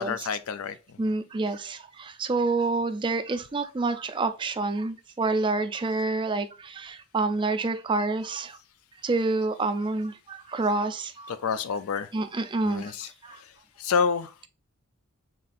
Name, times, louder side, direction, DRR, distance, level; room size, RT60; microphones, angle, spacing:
voice 1, 0.0-1.1 11.3-12.1 12.6-14.3, left 6 dB, 80° left, 0.4 m, -29 dB
voice 2, 1.0-8.6 9.0-11.3 12.1-12.9 13.2-13.4, right 3 dB, 20° right, 0.3 m, -28 dB
5.7 x 3.7 x 2.5 m
head